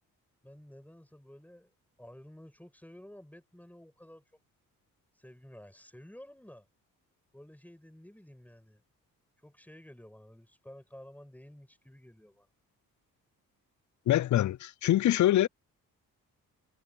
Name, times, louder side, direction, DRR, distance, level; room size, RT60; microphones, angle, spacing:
voice 1, 0.4-1.7 2.0-4.3 5.1-6.7 7.3-8.8 9.4-12.5, left 1 dB, 5° left, 6.7 m, -52 dB
voice 2, 14.1-15.5, left 13 dB, 55° left, 0.6 m, -24 dB
cardioid pair, 70°, 36 cm